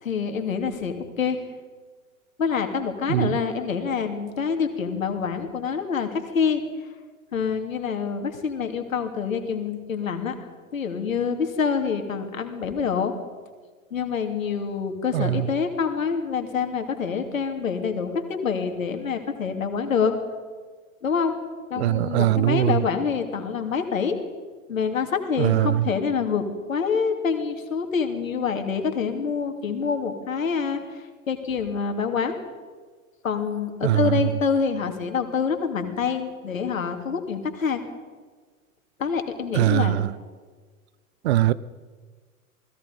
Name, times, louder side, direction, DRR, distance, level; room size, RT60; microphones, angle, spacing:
voice 1, 0.0-1.5 2.4-6.6 7.3-13.1 13.9-20.1 21.0-21.3 21.7-24.2 24.7-32.3 33.2-37.8 39.0-40.0, left 6 dB, 70° left, 6 dB, 2.9 m, -26 dB
voice 2, 15.1-15.4 21.8-22.8 25.4-25.8 33.8-34.1 39.5-40.0 41.2-41.5, right 14 dB, 50° right, 18 dB, 0.9 m, -21 dB
28.5 x 20.0 x 5.4 m, 1.4 s
figure-of-eight pair, 90°, 42 cm